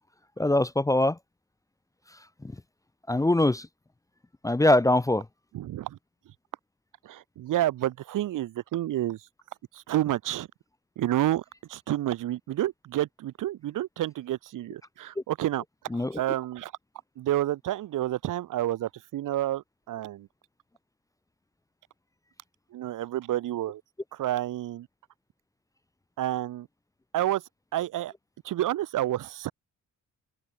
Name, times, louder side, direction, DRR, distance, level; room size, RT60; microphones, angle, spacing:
voice 1, 0.4-1.2 3.1-3.7 4.4-5.2 15.9-16.2, left 1 dB, 10° left, 0.6 m, -22 dB
voice 2, 5.5-6.0 7.0-9.2 9.7-10.5 11.0-11.4 11.7-15.6 15.9-16.7 17.2-20.3 22.7-23.8 24.1-24.9 26.2-26.7 27.1-27.4 27.7-28.1 28.4-29.5, right 13 dB, 85° right, 1.4 m, -29 dB
open air
cardioid pair, 115°, 31 cm